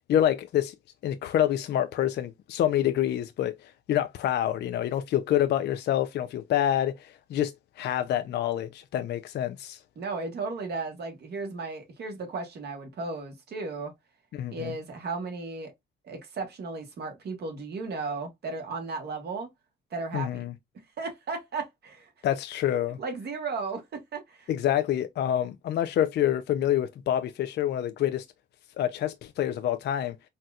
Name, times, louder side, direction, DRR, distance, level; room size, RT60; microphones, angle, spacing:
voice 1, 0.1-0.7 1.0-9.8 14.3-14.7 20.1-20.5 22.2-23.0 24.5-28.2 28.8-30.1, left 11 dB, 60° left, 0.4 m, -27 dB
voice 2, 10.0-13.9 14.5-15.7 16.0-19.5 19.9-20.4 21.0-22.1 23.0-24.5, right 3 dB, 55° right, 1.2 m, -35 dB
4.1 x 2.2 x 2.4 m
cardioid pair, 90°, 20 cm